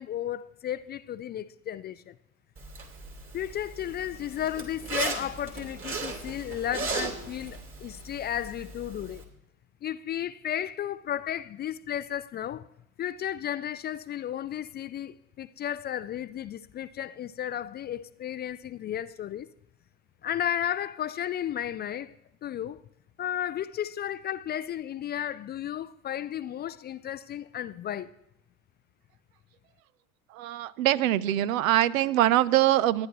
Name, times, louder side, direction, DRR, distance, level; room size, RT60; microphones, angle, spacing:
voice 1, 0.0-2.1 3.3-9.2 9.8-12.6 13.0-19.5 20.2-22.1 22.4-22.8 23.2-28.1, left 10 dB, 25° left, 0.4 m, -33 dB
Zipper (clothing), 2.6-9.2, right 3 dB, 30° right, 3.1 m, -37 dB
voice 2, 30.3-33.1, right 13 dB, 70° right, 0.6 m, -23 dB
27.0 x 10.5 x 3.0 m
hypercardioid pair, 70°, 42 cm